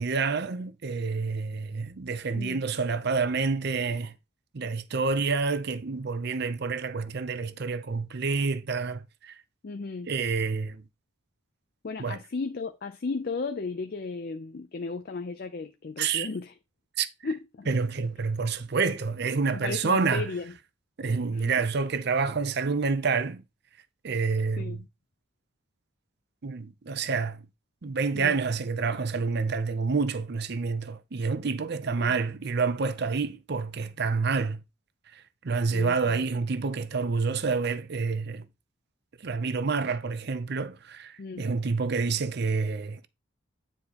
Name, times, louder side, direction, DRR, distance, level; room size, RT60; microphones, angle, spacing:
voice 1, 0.0-4.1 4.5-9.4 10.1-10.8 12.0-12.2 16.0-16.3 17.0-17.1 17.7-20.3 21.0-23.4 24.0-24.8 26.4-27.4 27.8-34.6 35.1-38.4 39.2-43.1, right 4 dB, 55° right, 0.6 m, -28 dB
voice 2, 9.6-10.1 11.8-16.5 17.2-17.7 19.5-20.5 21.3-21.6 24.6-24.9 28.1-28.4 32.0-32.1 35.7-36.2 41.2-41.5, left 4 dB, 45° left, 0.5 m, -35 dB
9.6 x 4.2 x 2.9 m
head